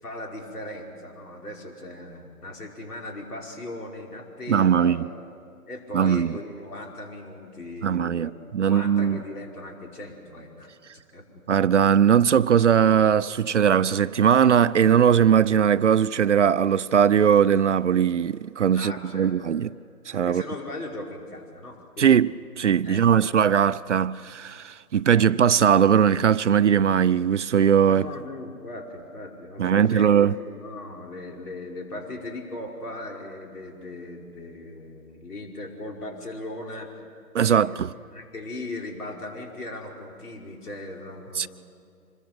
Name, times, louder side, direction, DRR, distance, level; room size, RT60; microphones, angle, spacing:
voice 1, 0.0-5.0 5.7-10.7 11.1-11.4 18.7-19.3 20.3-22.1 22.8-23.0 27.8-37.0 37.4-37.9 38.1-41.5, left 2 dB, 75° left, 5.3 m, -38 dB
voice 2, 4.5-5.1 5.9-6.4 7.8-9.2 11.5-19.7 20.1-20.4 22.0-28.1 29.6-30.4 37.3-37.9 41.4-41.5, right 8 dB, 50° right, 0.5 m, -20 dB
25.5 x 22.0 x 7.0 m
figure-of-eight pair, 145°, 46 cm